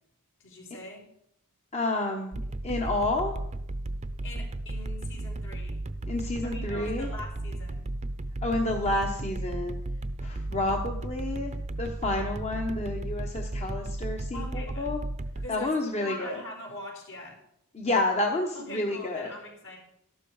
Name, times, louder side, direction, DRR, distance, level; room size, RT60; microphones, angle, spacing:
voice 1, 0.4-1.1 4.2-5.8 6.4-7.9 14.3-14.9 15.3-17.4 18.5-19.8, left 1 dB, 60° left, -1 dB, 4.7 m, -42 dB
voice 2, 1.7-3.4 6.1-7.1 8.4-9.8 10.2-11.5 11.8-15.0 15.5-16.4 17.7-19.3, left 2 dB, 30° left, 2 dB, 1.1 m, -30 dB
sound 1, 2.3-15.5, right 1 dB, 30° right, 0.7 m, -34 dB
13.0 x 12.0 x 4.8 m, 0.76 s
head